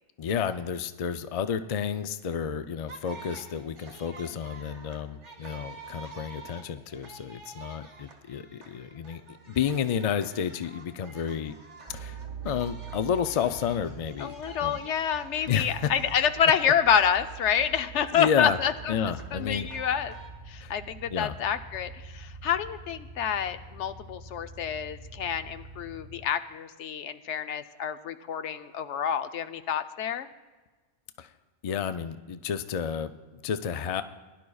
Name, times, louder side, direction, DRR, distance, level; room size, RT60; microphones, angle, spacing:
voice 1, 0.2-11.5 11.9-12.2 12.4-14.3 14.6-14.8 15.5-15.9 18.1-18.6 18.9-19.7 20.6-20.7 21.1-21.3 31.2-31.3 31.6-34.0, left 8 dB, 65° left, 10 dB, 0.3 m, -31 dB
sound 1, 2.9-20.3, right 4 dB, 85° right, 1.7 m, -49 dB
sound 2, 11.9-26.3, right 4 dB, 30° right, 0.8 m, -45 dB
voice 2, 14.2-18.9 19.3-20.1 20.5-30.3, left 8 dB, 90° left, 10 dB, 1.0 m, -28 dB
20.5 x 11.0 x 2.3 m, 1.3 s
omnidirectional pair, 1.2 m